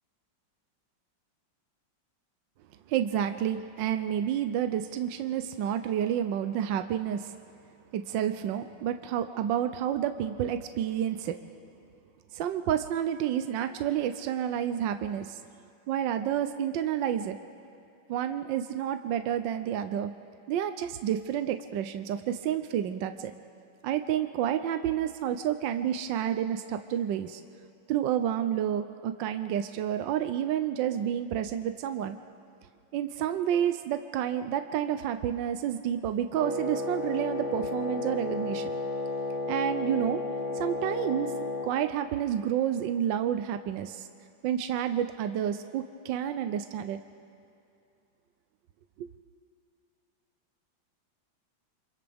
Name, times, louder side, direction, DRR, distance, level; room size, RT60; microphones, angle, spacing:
voice 1, 2.9-7.3 7.9-11.4 12.3-15.4 15.9-17.4 18.1-20.1 20.5-23.3 23.8-27.4 27.9-32.2 32.9-38.8 39.5-40.2 40.5-41.3 41.6-44.1 44.4-47.0 49.0-49.1, right 10 dB, 75° right, 8 dB, 1.4 m, -29 dB
Wind instrument woodwind instrument, 36.4-41.7, left 2 dB, 35° left, 2.7 m, -33 dB
29.0 x 25.5 x 3.5 m, 2.6 s
omnidirectional pair, 2.1 m